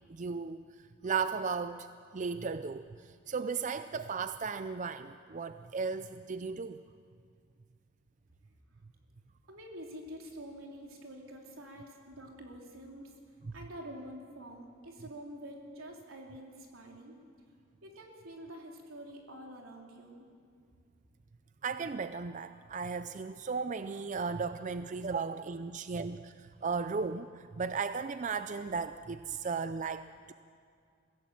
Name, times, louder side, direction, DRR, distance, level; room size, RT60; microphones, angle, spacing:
voice 1, 0.1-0.6 1.0-1.9 2.1-2.8 3.3-6.8 13.5-13.6 21.6-30.3, right 5 dB, 35° right, 11 dB, 0.4 m, -35 dB
voice 2, 9.5-13.1 13.5-17.2 17.8-20.3, equal, 85° right, 0 dB, 3.7 m, -47 dB
23.5 x 16.0 x 7.6 m, 2.2 s
head